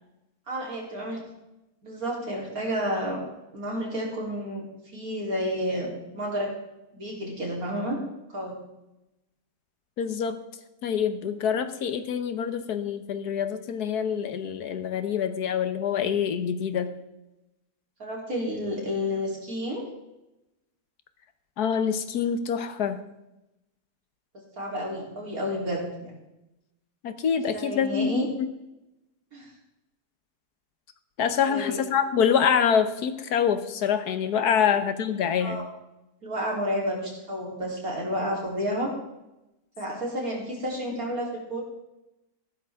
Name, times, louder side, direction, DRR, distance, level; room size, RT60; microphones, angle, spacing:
voice 1, 0.5-1.2 1.8-3.2 3.5-4.6 4.9-6.5 6.9-8.0 8.3-8.6 18.0-19.9 24.6-26.2 27.5-28.3 29.3-29.5 31.5-31.8 34.6-34.7 35.4-35.6 36.2-38.9 39.8-41.6, equal, 60° right, -2 dB, 3.9 m, -30 dB
voice 2, 10.0-10.4 10.8-16.9 21.6-23.0 27.0-28.5 31.2-35.7, left 7 dB, 75° left, 10 dB, 1.5 m, -26 dB
15.0 x 12.0 x 3.6 m, 0.95 s
omnidirectional pair, 1.7 m